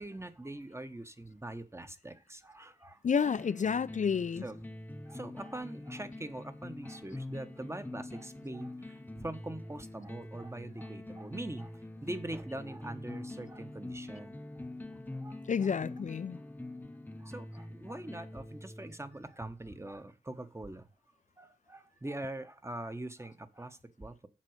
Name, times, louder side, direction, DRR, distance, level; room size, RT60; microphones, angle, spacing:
voice 1, 0.0-3.0 4.4-4.6 5.0-11.7 12.0-14.3 15.2-15.7 17.2-20.9 21.4-24.3, right 1 dB, 15° right, 1.0 m, -43 dB
voice 2, 3.0-4.4 15.5-16.4, left 6 dB, 55° left, 0.4 m, -30 dB
sound 1, 3.3-19.2, left 1 dB, 10° left, 0.7 m, -45 dB
7.5 x 4.8 x 6.4 m
wide cardioid pair, 60°, 16 cm